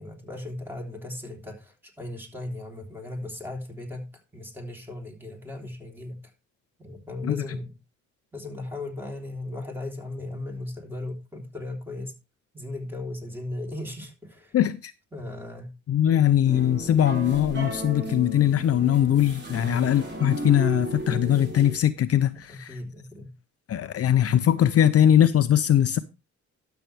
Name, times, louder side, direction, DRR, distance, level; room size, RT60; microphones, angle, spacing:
voice 1, 0.0-6.3 6.8-7.7 8.3-12.1 12.5-14.6 15.1-15.7 16.1-16.2 19.4-19.9 22.5-23.3, left 2 dB, 5° right, 3.5 m, -37 dB
voice 2, 14.5-14.9 15.9-22.7 23.7-26.0, left 10 dB, 50° left, 0.6 m, -21 dB
sound 1, 16.4-21.8, right 1 dB, 35° right, 3.5 m, -34 dB
12.5 x 7.1 x 3.3 m
cardioid pair, 90°, 30 cm